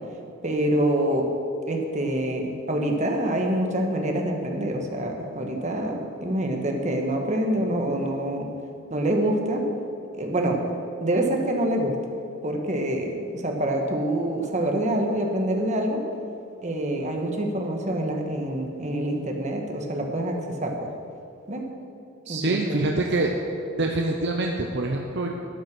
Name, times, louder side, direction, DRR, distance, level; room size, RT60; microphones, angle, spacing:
voice 1, 0.4-1.3 1.7-8.5 8.9-9.6 10.2-10.6 11.0-11.9 12.4-13.1 13.4-16.0 16.6-20.9 21.5-21.7 22.3-22.8, right 1 dB, 35° right, 2 dB, 1.4 m, -26 dB
voice 2, 22.3-23.3 23.8-25.3, right 2 dB, 55° right, 1 dB, 0.8 m, -25 dB
13.0 x 9.3 x 6.1 m, 2.6 s
head